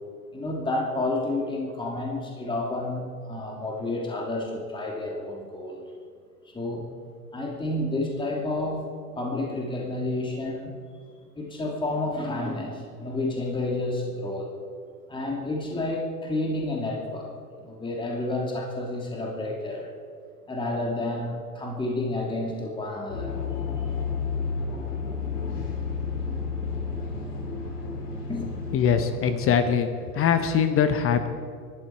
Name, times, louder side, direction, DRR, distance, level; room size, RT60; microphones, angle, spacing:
voice 1, 0.3-5.9 6.5-6.8 7.3-8.8 9.2-10.8 11.3-14.5 15.1-17.3 17.6-19.9 20.5-23.3 23.8-24.0 28.3-28.5, left 2 dB, 10° left, -1 dB, 2.6 m, -30 dB
sound 1, 23.1-29.6, left 5 dB, 80° left, 3.8 m, -31 dB
voice 2, 28.7-31.3, left 7 dB, 30° left, 9 dB, 1.1 m, -22 dB
23.0 x 12.5 x 4.6 m, 2.2 s
hypercardioid pair, 105°, 46 cm